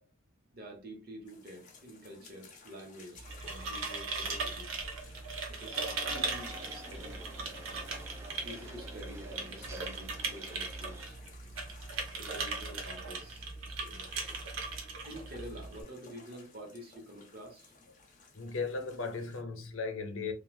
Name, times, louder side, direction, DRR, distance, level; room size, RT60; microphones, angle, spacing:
voice 1, 0.5-4.7 5.5-7.2 8.4-11.2 12.2-14.1 15.0-17.7, equal, 50° right, 1.0 m, -48 dB
sound 1, 1.2-19.4, left 4 dB, 40° left, 0.7 m, -57 dB
sound 2, 3.1-15.8, right 4 dB, 80° right, 0.7 m, -39 dB
sound 3, 5.7-11.1, equal, 15° right, 0.4 m, -50 dB
voice 2, 18.3-20.3, left 4 dB, 75° left, 0.6 m, -36 dB
3.1 x 2.3 x 2.3 m
head